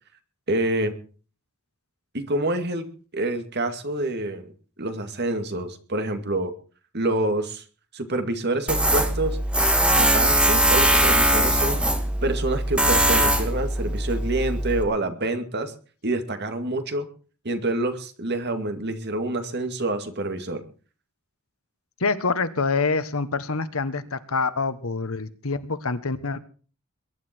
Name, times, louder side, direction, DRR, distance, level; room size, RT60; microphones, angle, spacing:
voice 1, 0.5-1.0 2.1-2.9 3.1-4.5 4.8-6.5 6.9-7.6 7.9-9.4 10.0-11.8 12.2-15.7 16.0-17.1 17.4-20.6, right 2 dB, 50° right, 7 dB, 2.2 m, -27 dB
Tools, 8.7-14.8, right 1 dB, 5° right, 2.0 m, -21 dB
voice 2, 22.0-26.4, left 4 dB, 75° left, 13 dB, 1.3 m, -26 dB
22.0 x 11.0 x 4.5 m, 0.39 s
head